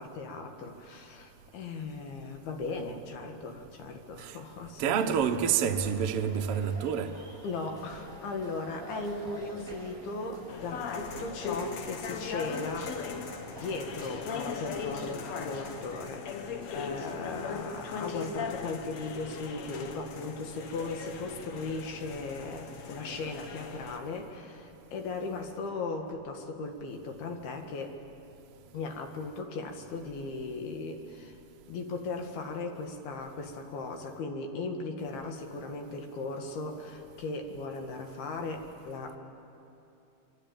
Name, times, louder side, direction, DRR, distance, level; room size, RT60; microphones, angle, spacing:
voice 1, 0.0-5.2 7.4-13.0 13.5-27.9 28.7-31.4 31.7-39.2, left 3 dB, 75° left, 4 dB, 3.8 m, -37 dB
voice 2, 4.8-7.2, right 8 dB, 75° right, 4 dB, 1.4 m, -28 dB
sound 1, 5.6-15.9, right 1 dB, 10° right, 7.0 m, -48 dB
sound 2, 10.5-24.0, left 5 dB, 60° left, 2.0 m, -39 dB
26.5 x 23.5 x 8.8 m, 2.8 s
omnidirectional pair, 4.4 m